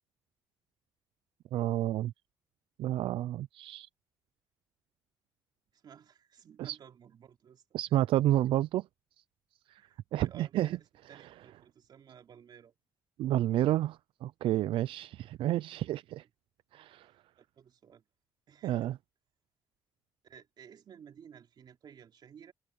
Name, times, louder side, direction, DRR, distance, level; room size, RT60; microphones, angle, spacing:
voice 1, 1.5-2.1 2.8-3.9 6.6-6.8 7.7-8.9 9.7-9.8 10.1-10.7 13.2-16.2 16.7-17.1 18.6-18.9, right 14 dB, 90° right, 0.4 m, -30 dB
voice 2, 5.7-7.6 9.8-12.7 17.4-18.0 18.5-18.9 20.2-22.5, right 8 dB, 55° right, 3.3 m, -55 dB
cardioid pair, 130°, 9 cm